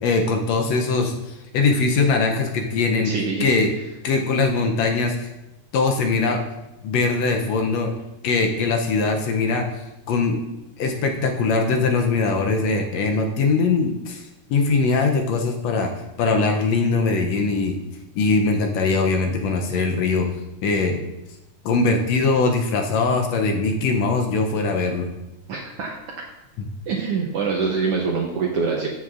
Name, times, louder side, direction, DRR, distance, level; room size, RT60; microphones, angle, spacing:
voice 1, 0.0-3.1 3.4-3.7 4.0-5.3 5.7-6.4 6.8-7.9 8.2-9.7 10.1-10.4 10.8-14.2 14.5-15.9 16.2-17.8 18.1-20.3 20.6-21.0 21.6-25.1 26.6-26.7, left 4 dB, 75° left, 3 dB, 1.7 m, -21 dB
voice 2, 3.0-3.5 25.5-26.0 26.9-28.9, right 5 dB, 70° right, -1 dB, 1.4 m, -24 dB
14.0 x 5.9 x 2.5 m, 0.96 s
omnidirectional pair, 3.5 m